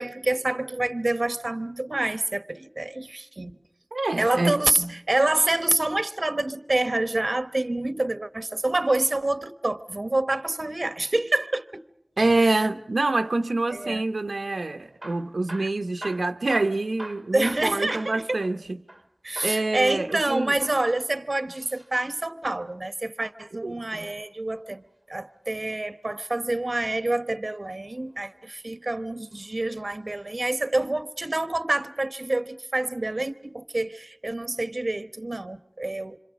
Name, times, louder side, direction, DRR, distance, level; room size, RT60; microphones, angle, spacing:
voice 1, 0.0-3.5 4.2-11.8 12.4-12.7 13.7-14.0 17.3-18.4 19.2-24.8 25.1-36.2, right 2 dB, 55° right, 1.1 m, -27 dB
voice 2, 3.9-4.9 12.2-18.8 19.4-20.5 23.6-24.1, right 2 dB, 90° right, 0.9 m, -26 dB
Hammer / Drill, 14.9-19.1 19.4-19.7 20.5-21.9 23.7-24.9 26.6-27.1 27.8-28.6 29.3-29.5 29.8-29.9 30.6-30.7, right 1 dB, 20° right, 1.4 m, -43 dB
27.0 x 26.5 x 6.2 m
wide cardioid pair, 45°, 0 cm